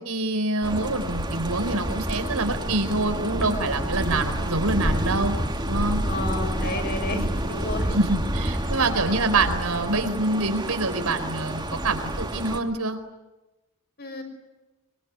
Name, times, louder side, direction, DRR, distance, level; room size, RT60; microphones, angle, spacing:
voice 1, 0.0-5.4 5.6-6.0 7.1-7.3 7.9-13.0, right 2 dB, 85° right, 7 dB, 4.4 m, -26 dB
sound 1, 0.6-12.6, right 1 dB, 20° right, 2.7 m, -29 dB
voice 2, 6.0-8.0 9.0-9.2 14.0-14.2, left 2 dB, 45° left, 5 dB, 6.6 m, -31 dB
25.0 x 23.5 x 9.7 m, 1.1 s
head